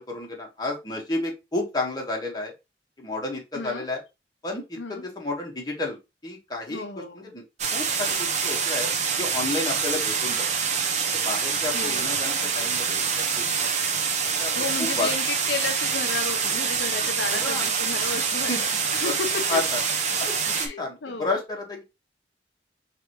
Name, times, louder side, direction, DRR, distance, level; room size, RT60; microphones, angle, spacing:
voice 1, 0.0-2.5 3.0-4.0 4.4-6.0 6.2-6.9 7.1-7.4 7.7-10.4 11.1-13.1 13.4-13.7 14.4-14.5 14.8-15.1 17.3-17.7 18.5-18.6 19.0-19.8 20.2-21.8, left 2 dB, 25° left, 1.3 m, -31 dB
voice 2, 3.5-3.9 4.8-5.0 6.7-7.3 11.7-12.1 12.4-12.7 14.5-19.6 20.5-21.3, left 4 dB, 80° left, 0.7 m, -33 dB
sound 1, 7.6-20.7, right 6 dB, 40° right, 0.8 m, -26 dB
4.7 x 3.4 x 3.0 m
head